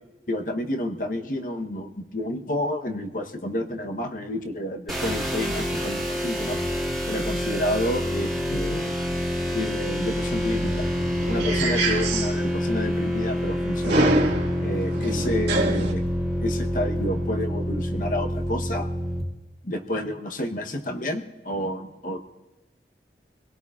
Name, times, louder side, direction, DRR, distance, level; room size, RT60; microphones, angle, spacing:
voice 1, 0.3-6.6 7.1-9.0 9.5-10.9 11.3-14.2 14.6-16.0 16.4-18.9 19.6-22.2, left 1 dB, 50° left, 5 dB, 1.0 m, -30 dB
sound 1, 4.9-19.2, equal, ahead, 2.3 m, -27 dB
sound 2, 10.2-15.9, right 2 dB, 90° right, 1.8 m, -27 dB
25.0 x 17.0 x 2.4 m, 1.0 s
head